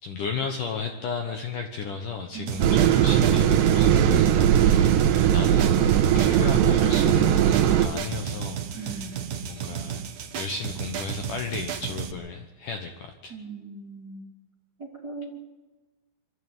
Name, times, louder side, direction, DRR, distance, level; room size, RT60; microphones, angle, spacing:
voice 1, 0.0-10.1 10.3-13.4, left 5 dB, 65° left, 5 dB, 2.2 m, -34 dB
voice 2, 2.3-2.9 8.7-9.3 13.3-14.2 14.8-15.4, right 3 dB, 30° right, 0 dB, 2.1 m, -38 dB
sound 1, 2.5-12.1, right 9 dB, 60° right, 2.2 m, -34 dB
sound 2, 2.6-7.9, right 10 dB, 80° right, 3.2 m, -19 dB
24.0 x 13.0 x 9.1 m, 1.2 s
omnidirectional pair, 5.1 m